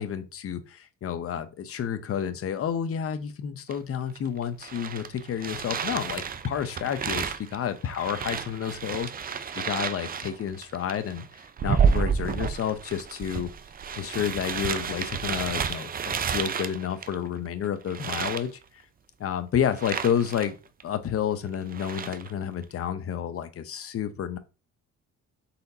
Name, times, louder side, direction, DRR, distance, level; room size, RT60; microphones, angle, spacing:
voice 1, 0.0-11.2 11.6-13.5 14.0-18.6 19.2-20.6 20.8-24.4, left 8 dB, 50° left, 0.7 m, -30 dB
sound 1, 3.7-3.8 4.2-17.5 17.9-18.5 19.7-20.5 20.8-20.9 21.5-22.3, right 6 dB, 30° right, 0.4 m, -30 dB
4.2 x 3.9 x 2.7 m
cardioid pair, 90°, 30 cm